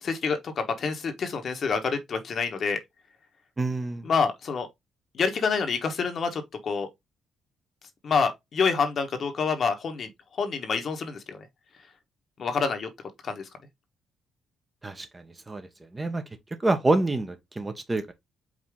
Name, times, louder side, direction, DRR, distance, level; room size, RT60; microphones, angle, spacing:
voice 1, 0.0-2.8 4.0-4.7 5.1-6.9 8.0-10.1 10.4-11.4 12.4-12.9 13.2-13.5, left 5 dB, 55° left, 1.1 m, -27 dB
voice 2, 3.6-4.1 14.8-15.7 15.9-16.2 16.6-18.1, right 2 dB, 20° right, 0.8 m, -27 dB
5.0 x 2.8 x 3.5 m
cardioid pair, 90°, 0 cm